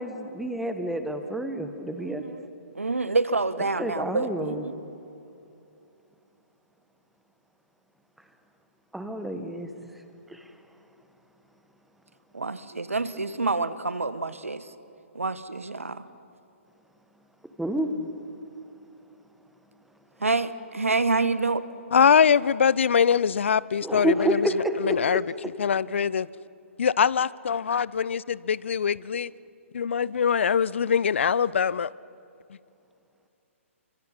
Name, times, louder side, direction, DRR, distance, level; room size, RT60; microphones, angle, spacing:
voice 1, 0.0-2.3 3.8-4.6 8.9-9.7 10.3-10.4 17.6-17.9 23.8-25.0, right 1 dB, ahead, 7 dB, 1.6 m, -29 dB
voice 2, 2.0-2.5 2.7-4.7 12.3-14.7 15.1-16.1 20.2-21.6, right 3 dB, 75° right, 14 dB, 1.2 m, -27 dB
voice 3, 21.9-25.2 25.6-26.3 26.8-29.3 29.7-31.9, left 7 dB, 60° left, 22 dB, 0.5 m, -23 dB
29.5 x 25.0 x 5.7 m, 2.7 s
figure-of-eight pair, 125°, 7 cm